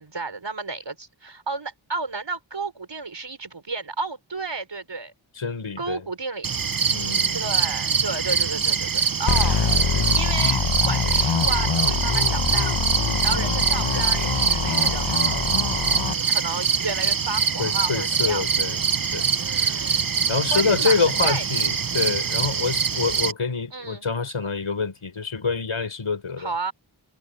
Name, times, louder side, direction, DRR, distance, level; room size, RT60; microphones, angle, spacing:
voice 1, 0.0-5.1 5.8-6.5 7.3-9.6 10.1-12.9 13.2-15.4 16.0-18.4 19.4-20.1 20.5-21.0 21.2-21.4 23.7-24.0 26.4-26.7, right 3 dB, 60° right, 6.1 m, -32 dB
voice 2, 5.4-6.0 6.9-7.4 13.3-13.6 17.6-18.8 19.1-19.3 19.6-19.7 20.3-26.5, left 4 dB, 80° left, 6.0 m, -26 dB
sound 1, 6.4-23.3, right 6 dB, 45° right, 0.8 m, -24 dB
sound 2, 9.3-16.1, left 6 dB, 60° left, 1.3 m, -24 dB
wide cardioid pair, 75°, 48 cm